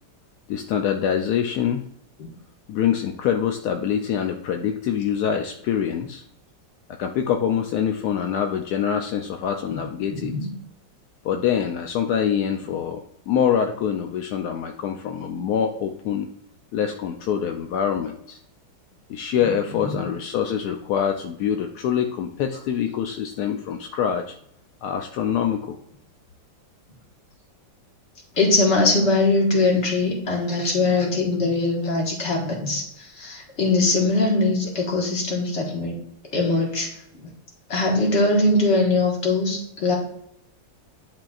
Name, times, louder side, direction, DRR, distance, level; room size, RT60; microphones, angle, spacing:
voice 1, 0.5-1.8 2.7-6.2 7.0-10.4 11.2-13.0 13.3-16.3 16.7-18.4 19.1-24.3 24.8-25.8, left 8 dB, 75° left, 4 dB, 0.9 m, -25 dB
voice 2, 10.1-10.5 19.8-20.0 28.3-36.0 36.3-36.9 37.7-39.9, left 2 dB, 35° left, -1 dB, 1.7 m, -21 dB
10.5 x 4.3 x 2.4 m, 0.75 s
omnidirectional pair, 2.1 m